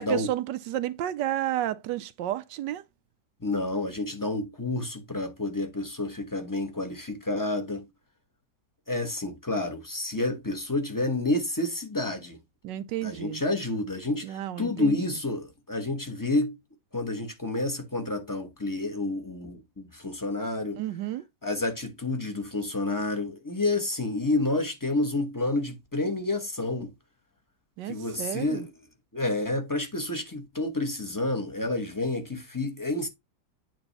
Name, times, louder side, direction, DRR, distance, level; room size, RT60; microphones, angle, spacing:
voice 1, 0.0-2.8 12.6-13.4 14.2-15.0 20.7-21.2 27.8-28.7, right 13 dB, 85° right, 1.3 m, -31 dB
voice 2, 3.4-7.9 8.9-12.4 13.0-16.6 16.9-20.8 21.4-26.9 27.9-28.7 29.1-33.1, left 2 dB, 15° left, 0.8 m, -29 dB
9.0 x 3.1 x 4.1 m
omnidirectional pair, 1.9 m